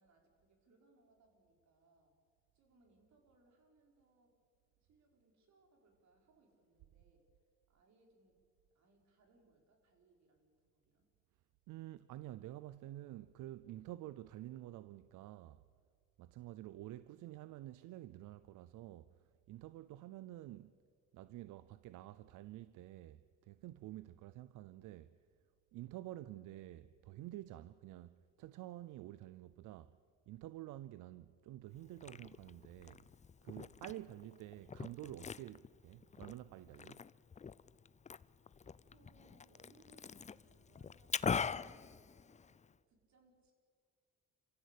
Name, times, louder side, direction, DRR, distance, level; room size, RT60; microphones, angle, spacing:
voice 1, 0.0-2.2 2.5-4.4 4.8-7.3 7.7-8.4 8.7-11.1 33.7-34.5 38.6-41.8 42.6-43.5, right 2 dB, 65° right, 5.1 m, -71 dB
voice 2, 11.7-15.6 16.2-19.1 19.5-20.7 21.1-25.1 25.7-30.0 30.3-33.1 33.4-37.0, right 15 dB, 90° right, 0.6 m, -50 dB
Liquid, 31.7-42.7, left 6 dB, 25° left, 0.5 m, -44 dB
28.0 x 15.0 x 8.4 m
cardioid pair, 90°, 30 cm